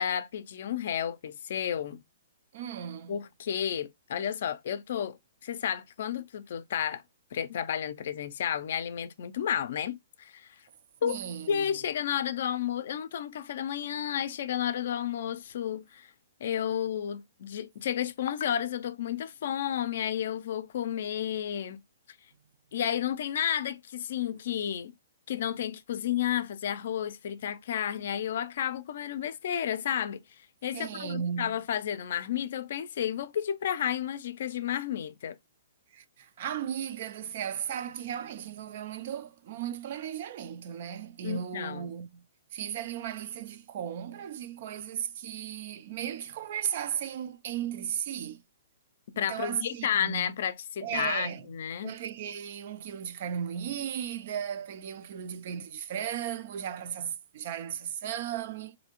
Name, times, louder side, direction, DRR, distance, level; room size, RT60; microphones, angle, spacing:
voice 1, 0.0-2.0 3.1-7.0 7.3-10.6 11.0-11.2 11.5-16.1 16.4-21.8 22.7-24.9 25.3-30.2 30.6-35.4 41.2-41.9 49.2-52.0, left 9 dB, 60° left, 0.4 m, -32 dB
voice 2, 2.5-3.2 11.0-11.8 30.7-31.6 35.9-42.2 42.5-48.4 49.1-50.3 50.8-51.5 51.8-58.8, right 9 dB, 45° right, 0.4 m, -36 dB
3.2 x 2.7 x 2.9 m
hypercardioid pair, 160°, 0 cm